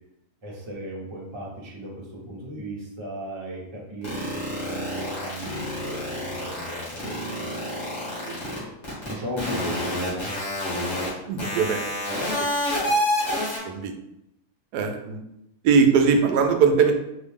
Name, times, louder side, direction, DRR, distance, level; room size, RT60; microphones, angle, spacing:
voice 1, 0.4-8.4 9.0-10.3, equal, 20° right, -3 dB, 0.8 m, -36 dB
sound 1, 4.0-8.6 8.8-9.1 9.4-11.1 11.4-13.6, left 1 dB, 45° left, 2.1 m, -27 dB
voice 2, 11.3-11.8 12.4-12.5 13.6-13.9 14.7-15.2 15.6-16.9, right 5 dB, 90° right, 4 dB, 1.2 m, -20 dB
4.6 x 2.7 x 3.6 m, 0.83 s
omnidirectional pair, 1.7 m